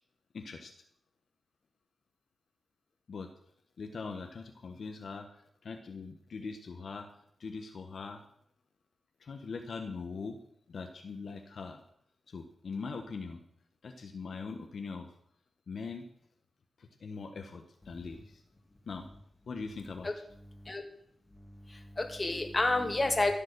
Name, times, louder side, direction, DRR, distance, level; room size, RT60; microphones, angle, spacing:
voice 1, 0.3-0.7 3.1-3.3 3.8-7.1 7.4-8.2 9.2-10.4 10.7-11.8 12.3-13.4 13.8-15.1 15.7-16.1 16.8-18.4 18.9-19.0 19.5-20.1, left 4 dB, 65° left, 4 dB, 1.2 m, -41 dB
voice 2, 21.7-23.3, left 2 dB, 25° left, 4 dB, 2.3 m, -29 dB
15.0 x 7.4 x 6.7 m, 0.70 s
wide cardioid pair, 90°, 0 cm